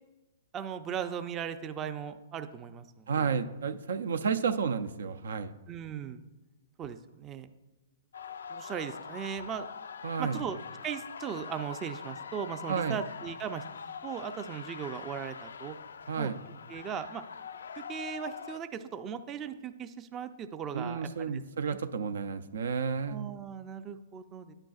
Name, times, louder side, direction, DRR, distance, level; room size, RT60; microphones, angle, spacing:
voice 1, 0.5-3.3 5.7-6.2 6.8-7.5 8.5-9.7 10.2-13.6 14.0-15.8 16.2-16.3 16.7-17.2 17.8-21.4 21.7-21.8 23.1-24.5, right 8 dB, 20° right, 10 dB, 0.4 m, -38 dB
voice 2, 3.1-5.5 10.0-10.4 12.7-13.0 16.1-16.4 20.7-23.3, right 6 dB, 80° right, 11 dB, 0.5 m, -31 dB
sound 1, 8.1-18.6, left 6 dB, 85° left, 0.3 m, -44 dB
10.5 x 8.9 x 2.4 m, 1.1 s
hypercardioid pair, 145°, 0 cm